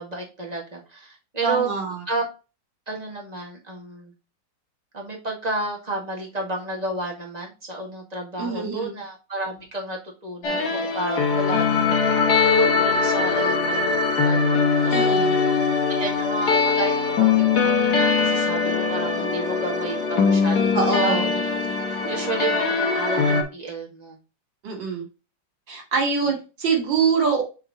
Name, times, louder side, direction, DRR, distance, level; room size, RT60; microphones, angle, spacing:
voice 1, 0.0-1.7 2.1-2.2 2.9-4.1 4.9-12.0 12.4-14.5 14.8-15.2 16.0-20.7 21.0-21.3 21.9-24.2, right 2 dB, 20° right, -1 dB, 1.9 m, -31 dB
voice 2, 1.4-2.0 8.4-8.9 14.9-15.3 20.7-21.3 24.6-25.1 25.7-27.4, right 5 dB, 90° right, 2 dB, 2.8 m, -24 dB
sound 1, 10.4-23.4, left 5 dB, 60° left, 1.6 m, -21 dB
6.5 x 3.8 x 4.1 m, 0.30 s
omnidirectional pair, 2.0 m